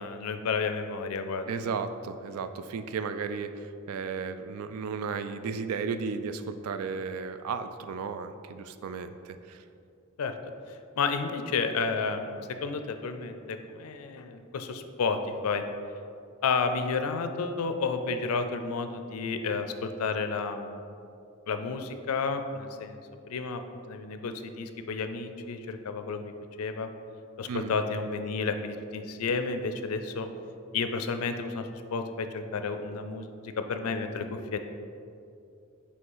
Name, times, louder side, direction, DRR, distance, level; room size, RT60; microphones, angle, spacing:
voice 1, 0.0-1.5 10.2-10.3 10.7-15.6 16.4-20.8 21.5-23.0 23.3-23.6 23.9-26.3 26.6-26.9 27.4-30.3 30.7-34.6, left 4 dB, 80° left, 8 dB, 0.4 m, -31 dB
voice 2, 1.5-9.6 27.5-27.7, right 5 dB, 80° right, 10 dB, 0.3 m, -34 dB
5.5 x 3.3 x 5.5 m, 2.5 s
head